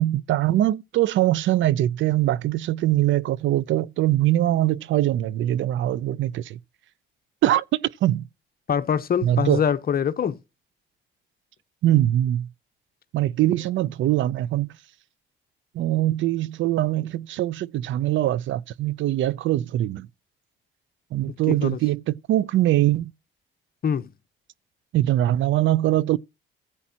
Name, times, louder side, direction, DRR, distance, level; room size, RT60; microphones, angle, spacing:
voice 1, 0.0-6.6 7.4-8.2 9.2-9.6 11.8-12.5 13.1-14.7 15.7-20.1 21.1-23.1 24.9-26.2, right 14 dB, 75° right, 0.6 m, -22 dB
voice 2, 8.7-10.4 21.5-21.8 23.8-24.1, left 7 dB, 50° left, 1.0 m, -24 dB
15.5 x 8.5 x 2.9 m
cardioid pair, 90°, 20 cm